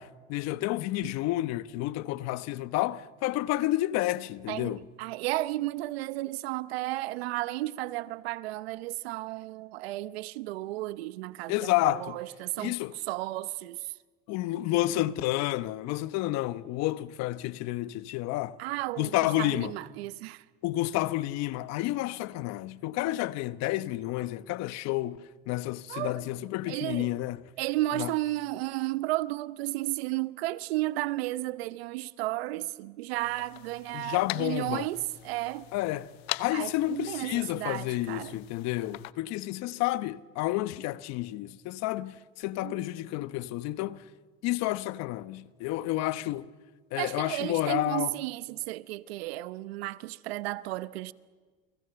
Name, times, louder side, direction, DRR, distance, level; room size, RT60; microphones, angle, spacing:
voice 1, 0.0-4.8 11.5-12.2 12.6-12.9 14.3-18.6 19.0-19.7 20.6-27.4 27.9-28.1 33.9-34.9 35.7-36.1 36.4-44.0 44.4-46.5 46.9-48.1, left 16 dB, 60° left, 1.1 m, -30 dB
voice 2, 4.5-12.7 13.1-13.8 18.6-20.4 25.9-26.3 26.7-27.2 27.6-35.7 36.5-38.4 42.6-42.9 47.0-51.1, right 17 dB, 80° right, 0.9 m, -33 dB
sound 1, 33.2-39.1, left 18 dB, 80° left, 0.8 m, -42 dB
29.5 x 20.5 x 7.0 m
supercardioid pair, 100°, 30 cm